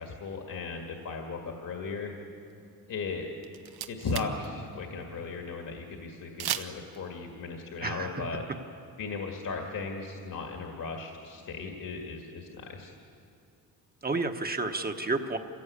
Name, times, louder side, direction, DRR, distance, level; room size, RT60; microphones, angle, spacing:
voice 1, 0.0-2.1 2.9-3.3 3.9-8.4 9.0-12.9, left 4 dB, 55° left, 2 dB, 2.0 m, -36 dB
sound 1, 3.4-4.5 4.7-4.8 6.4-7.0, right 10 dB, 80° right, 1.0 m, -34 dB
voice 2, 7.8-8.2 14.0-15.4, right 3 dB, 25° right, 5 dB, 1.1 m, -31 dB
25.5 x 16.5 x 8.5 m, 2.6 s
cardioid pair, 115°, 38 cm